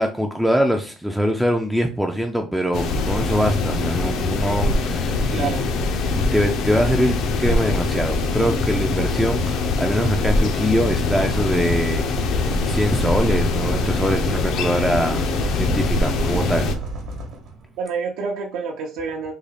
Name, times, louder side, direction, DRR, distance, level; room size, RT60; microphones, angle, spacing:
voice 1, 0.0-5.5 5.8-15.3 15.5-16.7, equal, ahead, 4 dB, 0.3 m, -23 dB
sound 1, 2.7-16.8, left 3 dB, 60° left, 0.5 m, -23 dB
sound 2, 3.1-4.4 5.6-17.8, right 3 dB, 55° right, 0.9 m, -37 dB
voice 2, 5.3-5.7 16.2-16.6 17.8-19.3, right 5 dB, 75° right, 0 dB, 0.6 m, -28 dB
3.8 x 2.3 x 3.3 m, 0.36 s
cardioid pair, 150°, 0 cm